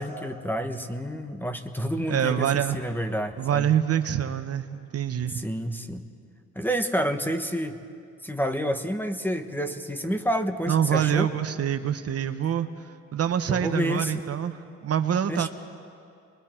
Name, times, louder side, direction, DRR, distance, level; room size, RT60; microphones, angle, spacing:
voice 1, 0.0-3.7 5.3-6.0 6.5-7.8 8.2-11.3 13.5-14.1 15.3-15.5, equal, 5° left, 7 dB, 1.2 m, -29 dB
voice 2, 2.1-2.8 3.4-5.4 10.7-12.7 13.1-15.5, right 9 dB, 55° right, 8 dB, 1.0 m, -25 dB
30.0 x 22.0 x 4.5 m, 2.3 s
cardioid pair, 90°, 30 cm